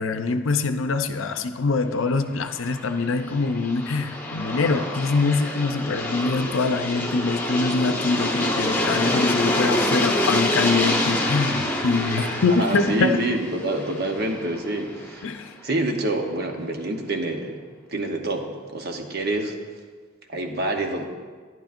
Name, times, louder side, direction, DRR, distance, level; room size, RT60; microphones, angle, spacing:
voice 1, 0.0-13.2 15.2-15.5, left 4 dB, 80° left, 8 dB, 0.6 m, -24 dB
Aircraft, 2.4-15.3, left 1 dB, 10° left, 1.1 m, -27 dB
sound 1, 3.5-15.1, equal, 5° right, 1.5 m, -44 dB
voice 2, 12.2-15.3 15.6-19.5 20.3-21.0, right 2 dB, 55° right, 3 dB, 0.9 m, -27 dB
12.0 x 10.5 x 2.5 m, 1.5 s
head